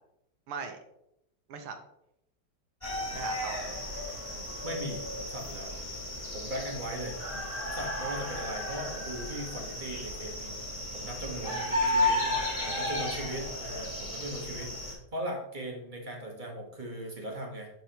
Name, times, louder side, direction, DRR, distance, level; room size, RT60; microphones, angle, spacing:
voice 1, 0.5-0.8 1.5-1.8 3.1-3.6 11.2-12.8, right 5 dB, 90° right, 6 dB, 1.8 m, -41 dB
sound 1, 2.8-14.9, left 1 dB, 15° left, 2.4 m, -33 dB
voice 2, 4.6-5.7 6.3-7.2 7.6-10.5 10.9-11.6 11.9-12.2 12.6-17.7, right 1 dB, 25° right, 0 dB, 1.2 m, -39 dB
11.5 x 4.6 x 2.9 m, 0.80 s
omnidirectional pair, 2.3 m